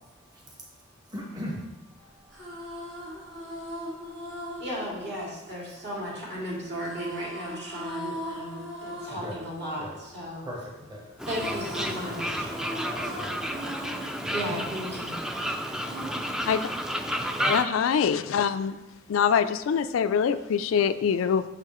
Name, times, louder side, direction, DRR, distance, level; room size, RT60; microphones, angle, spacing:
voice 1, 1.1-1.6 7.3-7.4 9.1-9.4 9.8-10.0 10.4-10.6 10.9-11.0 11.4-13.3 14.2-14.7 17.2-17.6, equal, 20° right, -2 dB, 1.1 m, -39 dB
sound 1, 2.1-6.2 6.8-10.8 11.1-15.4 15.9-17.3, equal, 75° right, 1.7 m, -40 dB
voice 2, 4.6-10.5 11.3-12.5 14.3-15.1, equal, 55° right, -5 dB, 2.3 m, -35 dB
Fowl, 11.2-17.6, equal, 5° right, 0.3 m, -31 dB
voice 3, 17.5-18.8 19.1-21.4, left 7 dB, 85° left, 11 dB, 0.3 m, -24 dB
6.7 x 6.2 x 3.0 m, 0.97 s
head